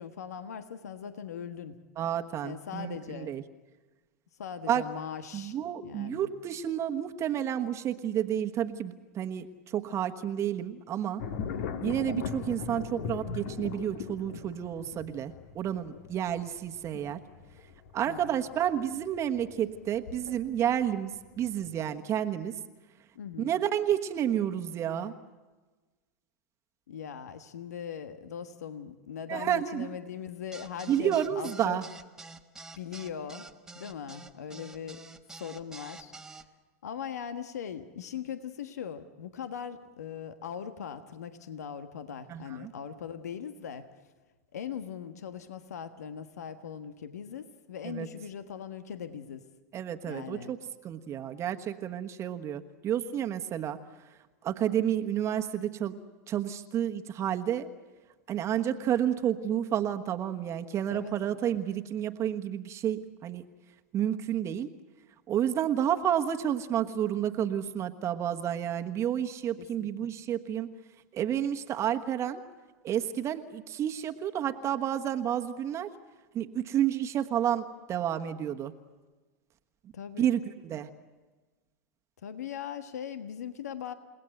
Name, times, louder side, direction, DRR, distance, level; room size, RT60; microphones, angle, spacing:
voice 1, 0.0-1.8 2.4-3.3 4.4-5.5 5.8-6.3 18.1-18.3 23.1-23.5 26.9-31.8 32.8-33.5 33.7-35.0 35.4-36.1 36.8-43.9 44.5-49.4 50.1-50.5 60.9-61.1 69.6-69.9 79.9-80.3 82.2-83.9, left 8 dB, 80° left, 9 dB, 1.4 m, -40 dB
voice 2, 2.0-3.4 4.7-4.8 5.3-11.2 11.8-17.2 17.9-22.6 23.4-25.1 29.3-29.9 30.9-31.8 42.3-42.7 47.8-48.1 49.7-53.8 54.4-56.0 56.3-57.7 58.3-63.4 63.9-64.7 65.3-70.7 71.1-72.4 72.8-75.9 76.3-78.7 80.2-80.9, right 10 dB, 35° right, 6 dB, 1.3 m, -30 dB
sound 1, 11.2-20.8 21.2-21.8, left 6 dB, 65° left, 2.1 m, -39 dB
sound 2, 30.5-36.4, right 3 dB, 5° right, 1.4 m, -47 dB
30.0 x 18.0 x 7.9 m, 1.3 s
hypercardioid pair, 100°, 9 cm